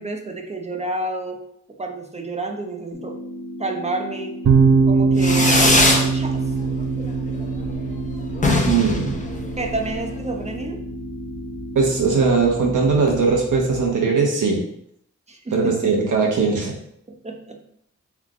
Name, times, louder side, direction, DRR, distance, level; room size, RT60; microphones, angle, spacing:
voice 1, 0.0-1.4 1.8-3.2 3.6-4.4 4.9-6.4 9.6-10.8 15.3-16.0 17.1-17.6, right 2 dB, 20° right, 3 dB, 0.8 m, -30 dB
sound 1, 2.9-12.9, equal, 80° left, 1.2 m, -35 dB
sound 2, 4.4-13.9, right 4 dB, 60° right, 0.7 m, -23 dB
Fireworks, 5.2-6.1 6.5-7.0 7.3-7.4 7.6-7.7 8.0-8.1 8.3-10.0, left 2 dB, 25° left, 0.7 m, -20 dB
voice 2, 8.7-9.2 11.7-14.6 15.5-16.7, right 4 dB, 90° right, -1 dB, 1.1 m, -19 dB
3.6 x 3.6 x 3.7 m, 0.72 s
cardioid pair, 75°, 30 cm